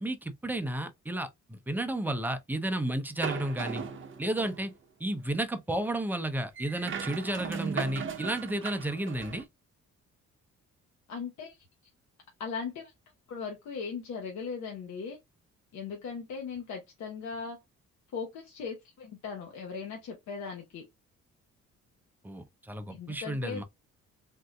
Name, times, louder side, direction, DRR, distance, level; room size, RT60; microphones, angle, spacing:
voice 1, 0.0-3.8 4.2-4.7 5.0-9.5 22.2-23.6, right 1 dB, 5° right, 0.5 m, -32 dB
sound 1, 3.2-4.7 6.6-9.4, right 6 dB, 40° right, 0.7 m, -37 dB
voice 2, 11.1-11.6 12.4-12.9 13.3-15.2 15.7-17.6 18.1-20.9 22.9-23.6, left 5 dB, 65° left, 0.9 m, -38 dB
3.6 x 2.6 x 2.2 m
cardioid pair, 90°, 30 cm